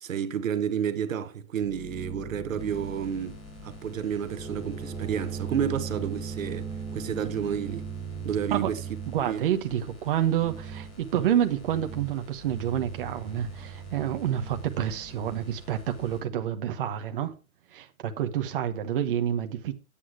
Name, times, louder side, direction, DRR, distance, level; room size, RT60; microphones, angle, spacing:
voice 1, 0.0-3.4 3.6-7.9 8.2-8.8 9.3-9.4, right 8 dB, 65° right, 1.2 m, -30 dB
sound 1, 1.6-9.3 10.3-11.0 11.6-12.2 12.4-16.5, right 5 dB, ahead, 1.1 m, -39 dB
sound 2, 2.6-16.2, left 2 dB, 15° left, 2.2 m, -50 dB
voice 2, 9.1-17.3 17.7-19.8, right 10 dB, 40° right, 1.1 m, -28 dB
9.4 x 8.6 x 4.8 m
hypercardioid pair, 160°, 42 cm